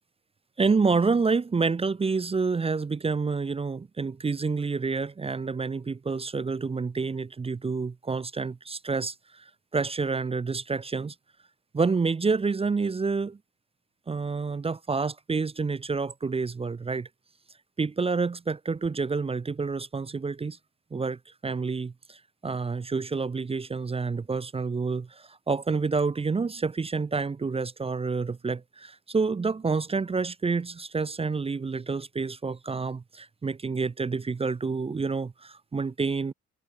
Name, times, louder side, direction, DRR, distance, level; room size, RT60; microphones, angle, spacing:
voice 1, 0.6-9.4 9.7-11.1 11.7-13.4 14.1-17.1 17.8-20.6 20.9-36.3, right 4 dB, 20° right, 0.5 m, -28 dB
cardioid pair, 90°, 30 cm